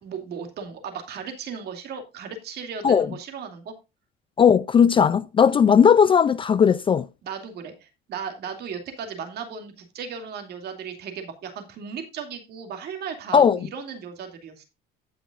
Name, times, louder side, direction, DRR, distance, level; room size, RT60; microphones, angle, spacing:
voice 1, 0.0-3.7 7.2-14.6, right 6 dB, 55° right, 2.6 m, -36 dB
voice 2, 4.4-7.1 13.3-13.6, left 7 dB, 25° left, 0.4 m, -17 dB
16.0 x 5.9 x 2.5 m
cardioid pair, 140°, 20 cm